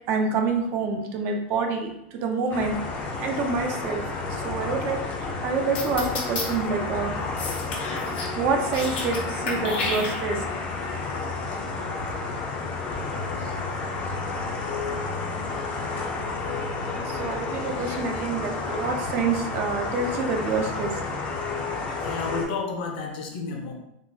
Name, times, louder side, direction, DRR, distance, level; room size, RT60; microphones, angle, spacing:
voice 1, 0.1-7.1 8.4-10.4 16.9-21.0, right 4 dB, 35° right, 4 dB, 0.4 m, -27 dB
sound 1, 2.5-22.5, left 3 dB, 25° left, 0.4 m, -31 dB
sound 2, 5.7-6.4 7.4-8.3 8.6-9.2 9.5-10.5, left 3 dB, 80° left, 1.3 m, -31 dB
voice 2, 21.9-23.7, left 4 dB, 60° left, 2 dB, 0.7 m, -31 dB
3.6 x 2.5 x 2.6 m, 0.82 s
supercardioid pair, 165°, 6 cm